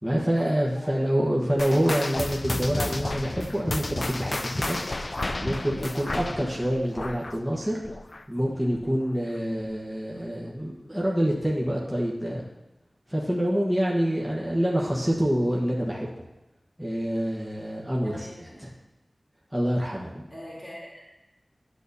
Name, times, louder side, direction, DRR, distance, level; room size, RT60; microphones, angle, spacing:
voice 1, 0.0-4.8 5.0-7.8 8.3-12.4 13.1-16.1 16.8-18.7 19.5-20.3, equal, 5° right, -4 dB, 1.2 m, -27 dB
sound 1, 1.6-8.4 8.7-9.0 9.6-9.7 10.5-10.6, left 2 dB, 45° left, 0.4 m, -31 dB
voice 2, 18.0-18.6 20.3-21.0, equal, 20° left, -7 dB, 3.2 m, -43 dB
10.5 x 8.2 x 2.7 m, 1.0 s
wide cardioid pair, 70°, 0 cm